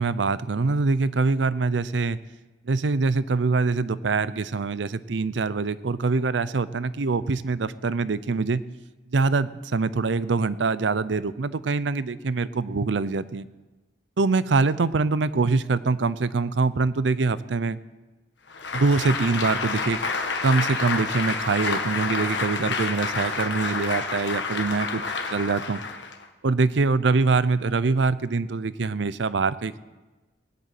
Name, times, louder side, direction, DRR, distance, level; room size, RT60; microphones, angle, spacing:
voice 1, 0.0-2.2 2.7-8.6 9.1-13.5 14.2-17.8 18.7-20.0 20.4-25.0 25.3-25.8 26.4-29.8, right 4 dB, 80° right, 16 dB, 0.6 m, -24 dB
Applause, 18.5-26.2, left 4 dB, 80° left, 1.4 m, -29 dB
18.0 x 8.3 x 8.9 m, 1.2 s
head